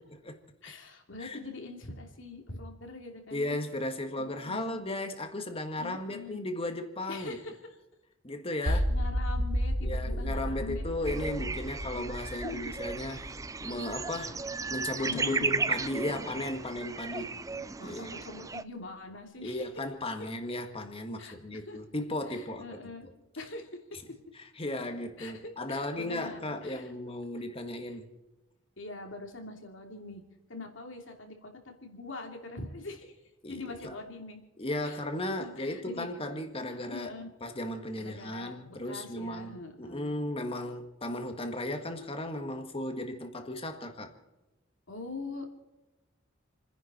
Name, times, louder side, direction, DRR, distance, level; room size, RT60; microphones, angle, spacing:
voice 1, 0.6-3.6 4.2-4.8 5.8-6.4 7.1-7.6 8.6-11.5 11.9-12.6 13.1-13.4 13.7-13.9 15.0-15.6 17.5-19.7 21.2-21.8 22.3-23.1 23.4-23.7 25.2-26.9 28.8-30.2 30.5-33.2 33.5-34.4 34.8-35.0 35.4-36.1 36.9-37.3 38.0-40.1 44.9-45.5, left 3 dB, 65° left, 3.0 m, -43 dB
voice 2, 3.3-7.4 8.2-9.0 9.8-13.2 13.6-14.4 14.7-17.4 17.8-18.2 19.4-22.6 24.6-28.1 33.4-34.0 34.6-37.1 37.4-44.1, left 1 dB, 30° left, 1.9 m, -35 dB
sound 1, 8.7-14.7, equal, 75° right, 2.5 m, -32 dB
sound 2, 11.1-18.6, right 4 dB, 15° right, 0.4 m, -35 dB
29.5 x 10.5 x 4.4 m
head